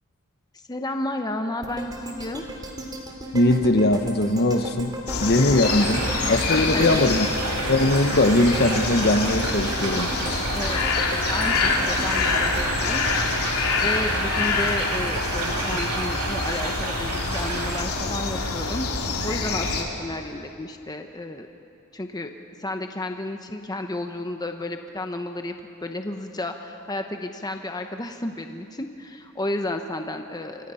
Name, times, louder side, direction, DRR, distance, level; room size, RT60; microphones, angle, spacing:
voice 1, 0.7-2.4 6.6-7.0 10.5-10.8 11.1-18.9 19.2-21.5 21.9-22.3 22.6-25.5 25.8-30.7, left 1 dB, 20° left, 5 dB, 0.9 m, -32 dB
sound 1, 1.6-13.8 14.2-14.3, right 1 dB, 20° right, 3.0 m, -36 dB
voice 2, 3.3-4.9 5.2-7.3 7.7-10.1, left 2 dB, 50° left, 8 dB, 1.2 m, -20 dB
sound 2, 5.1-19.8, left 3 dB, 85° left, 2.8 m, -26 dB
sound 3, 5.6-17.8, right 3 dB, 80° right, 2.8 m, -31 dB
28.5 x 25.0 x 5.7 m, 2.7 s
head